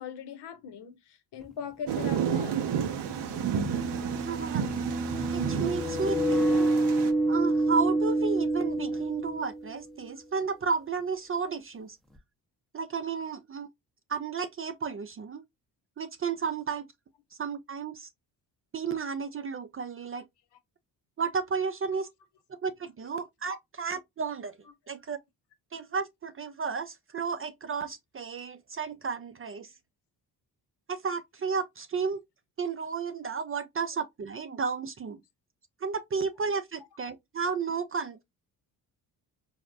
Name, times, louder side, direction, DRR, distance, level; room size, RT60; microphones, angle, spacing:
voice 1, 0.0-2.6 21.9-22.0 23.5-23.6, left 8 dB, 55° left, 0.8 m, -40 dB
sound 1, 1.4-1.5 3.0-9.9, right 2 dB, ahead, 0.7 m, -28 dB
Thunder, 1.9-7.1, right 8 dB, 60° right, 0.8 m, -31 dB
voice 2, 4.2-4.7 5.3-6.7 7.3-12.0 12.7-13.7 14.1-15.4 16.0-16.9 17.4-18.1 18.7-20.2 21.2-22.1 22.6-24.5 24.9-25.2 25.7-29.7 30.9-32.2 32.6-35.2 35.8-38.2, right 5 dB, 30° right, 0.4 m, -32 dB
4.0 x 2.1 x 2.4 m
hypercardioid pair, 50°, 48 cm